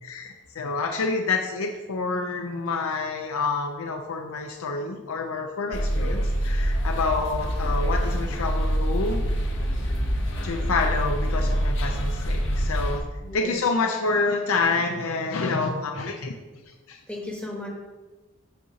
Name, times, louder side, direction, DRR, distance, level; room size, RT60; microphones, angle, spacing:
voice 1, 0.0-9.2 10.4-13.0 13.3-16.3 16.9-17.0, left 4 dB, 80° left, 4 dB, 0.5 m, -28 dB
sound 1, 5.7-13.0, equal, 60° left, 0.9 m, -25 dB
voice 2, 13.2-13.6 17.1-17.7, left 1 dB, 5° left, -1 dB, 0.9 m, -35 dB
7.5 x 2.8 x 5.7 m, 1.2 s
head